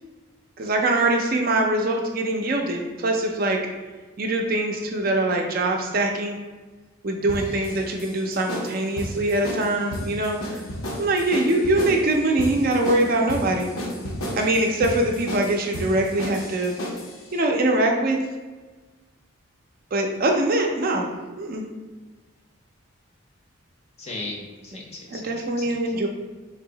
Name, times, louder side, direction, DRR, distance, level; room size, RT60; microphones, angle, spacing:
voice 1, 0.6-3.6 4.2-6.4 7.0-10.6 11.0-13.7 14.3-16.8 17.3-18.2 19.9-21.1 21.4-21.7 25.1-26.1, right 2 dB, 45° right, 2 dB, 0.4 m, -23 dB
sound 1, 7.3-17.2, equal, 80° left, 0.8 m, -32 dB
voice 2, 24.0-25.9, left 2 dB, 30° left, -1 dB, 0.6 m, -37 dB
3.4 x 2.8 x 3.8 m, 1.3 s
head